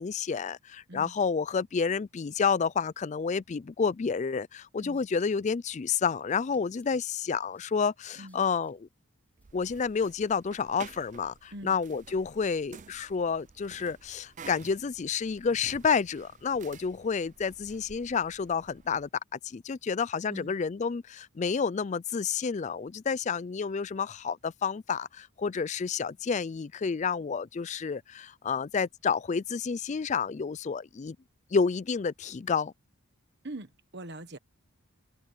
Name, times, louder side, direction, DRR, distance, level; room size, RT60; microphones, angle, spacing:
voice 1, 0.0-8.9 9.5-31.2 31.5-32.7, left 5 dB, 30° left, 0.3 m, -30 dB
sound 1, 4.9-11.2, left 2 dB, 5° left, 7.0 m, -72 dB
sound 2, 9.4-19.1, right 5 dB, 35° right, 0.5 m, -52 dB
voice 2, 33.4-34.4, right 1 dB, 50° right, 1.4 m, -42 dB
head